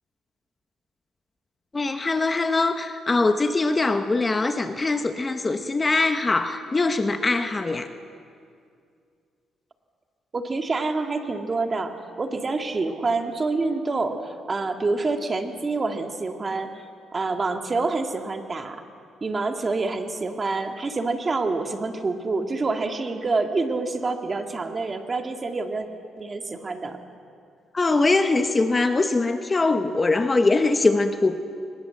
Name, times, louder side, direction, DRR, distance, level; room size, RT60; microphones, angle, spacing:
voice 1, 1.7-7.9 27.7-31.4, left 3 dB, 25° left, 8 dB, 1.1 m, -22 dB
voice 2, 10.3-16.7 17.1-18.8 19.2-25.9 26.2-27.0, right 3 dB, 30° right, 5 dB, 2.0 m, -27 dB
23.0 x 20.5 x 7.9 m, 2.4 s
cardioid pair, 90°, 0 cm